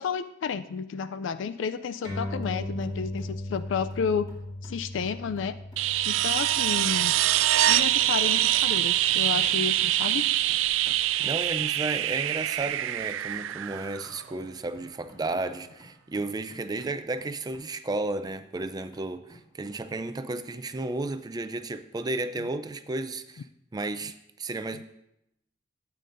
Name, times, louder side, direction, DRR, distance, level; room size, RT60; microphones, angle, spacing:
voice 1, 0.0-4.3 4.6-5.6 6.0-10.3, left 6 dB, 70° left, 13 dB, 0.3 m, -31 dB
sound 1, 2.0-8.9, left 1 dB, 45° left, 2.2 m, -38 dB
sound 2, 2.0-20.2, equal, 25° left, 2.8 m, -56 dB
sound 3, 5.8-14.4 16.8-16.9, right 14 dB, 85° right, 0.3 m, -25 dB
voice 2, 11.2-23.4 23.7-24.8, right 2 dB, 20° right, 10 dB, 0.4 m, -33 dB
12.5 x 8.4 x 2.6 m, 0.82 s
head